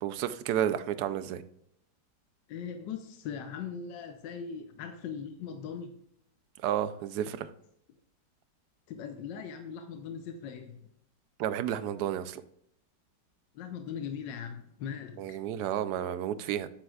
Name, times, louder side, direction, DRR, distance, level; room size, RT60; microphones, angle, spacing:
voice 1, 0.0-1.4 6.6-7.5 11.4-12.4 15.2-16.7, right 10 dB, 75° right, 13 dB, 1.1 m, -31 dB
voice 2, 2.5-6.0 8.9-10.8 13.5-15.4, left 7 dB, 85° left, 7 dB, 1.4 m, -40 dB
8.9 x 7.7 x 2.3 m, 0.73 s
omnidirectional pair, 1.9 m